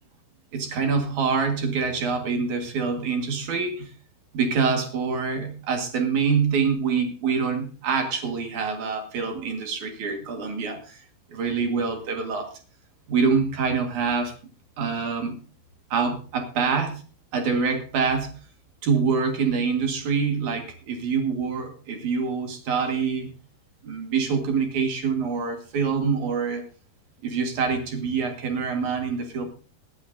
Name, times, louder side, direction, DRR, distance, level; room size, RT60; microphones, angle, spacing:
voice 1, 0.5-3.9 4.3-12.5 13.1-14.3 14.8-15.4 15.9-17.0 17.3-18.3 18.8-23.3 23.8-26.6 27.2-29.5, right 5 dB, 55° right, 4 dB, 2.5 m, -25 dB
19.5 x 12.0 x 2.7 m, 0.37 s
omnidirectional pair, 5.2 m